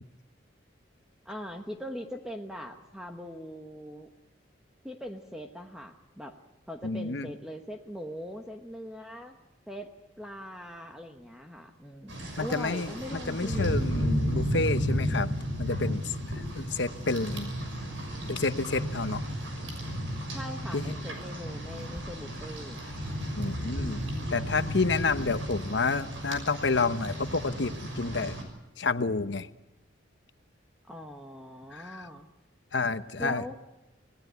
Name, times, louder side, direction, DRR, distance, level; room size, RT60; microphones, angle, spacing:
voice 1, 1.2-4.1 4.8-6.4 6.7-9.4 9.7-9.9 10.2-14.0 20.3-22.8 30.9-32.3 33.2-33.6, equal, 5° right, 3 dB, 1.1 m, -41 dB
voice 2, 6.8-7.3 12.4-15.3 15.6-17.5 18.3-19.2 20.7-20.9 23.4-24.0 24.3-28.4 28.8-29.5 31.7-32.1 32.7-33.4, left 3 dB, 65° left, 11 dB, 0.9 m, -29 dB
Rain, 12.1-28.4, equal, 75° right, 6.2 m, -33 dB
26.5 x 18.0 x 8.2 m, 0.98 s
head